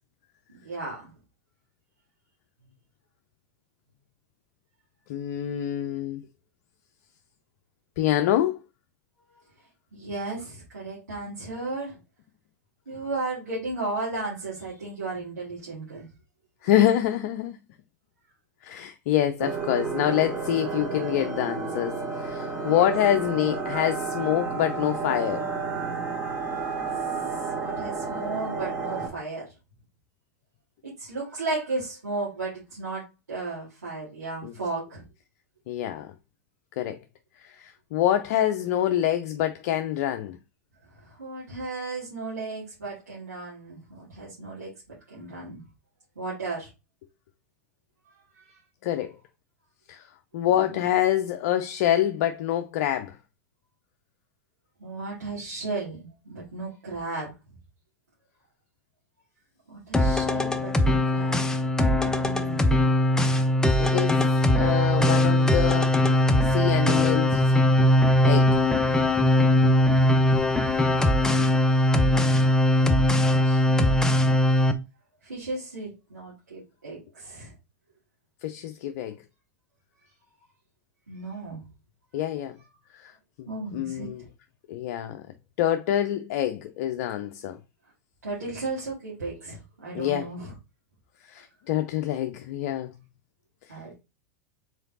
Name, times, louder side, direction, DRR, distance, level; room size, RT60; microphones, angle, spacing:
voice 1, 0.5-1.1 9.9-12.0 12.9-16.1 22.6-22.8 27.5-29.5 30.8-35.0 40.9-44.7 45.1-45.6 46.2-46.7 48.1-48.6 50.5-50.7 54.8-57.3 59.7-61.4 61.9-62.8 70.6-71.5 73.1-74.6 75.2-77.5 81.1-81.6 83.5-84.3 88.2-90.5 93.7-94.0, right 3 dB, 85° right, 2.2 m, -35 dB
voice 2, 5.1-6.2 8.0-8.6 16.6-17.6 18.6-25.4 34.4-34.5 35.7-36.1 36.8-37.0 37.4-40.4 48.8-49.1 49.9-50.0 50.3-53.2 63.8-64.3 64.5-65.9 66.4-67.4 68.2-68.6 78.4-79.1 82.1-82.5 83.0-83.1 83.7-84.2 84.7-85.2 85.6-87.6 89.9-90.3 91.3-92.9, left 11 dB, 55° left, 0.4 m, -26 dB
sound 1, 19.4-29.1, right 4 dB, 20° right, 2.1 m, -31 dB
sound 2, 59.9-74.7, left 1 dB, 5° left, 0.6 m, -21 dB
4.9 x 3.9 x 2.7 m
figure-of-eight pair, 90°, 9 cm